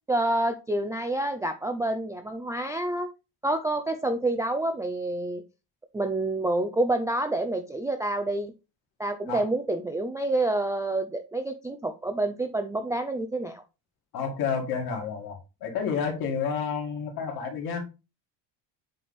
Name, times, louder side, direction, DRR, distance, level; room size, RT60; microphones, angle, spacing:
voice 1, 0.1-3.1 3.4-5.4 5.9-8.5 9.0-13.6, right 2 dB, 10° right, 0.3 m, -28 dB
voice 2, 14.1-17.8, left 6 dB, 55° left, 2.4 m, -30 dB
7.7 x 3.4 x 4.1 m
cardioid pair, 135°, 45 cm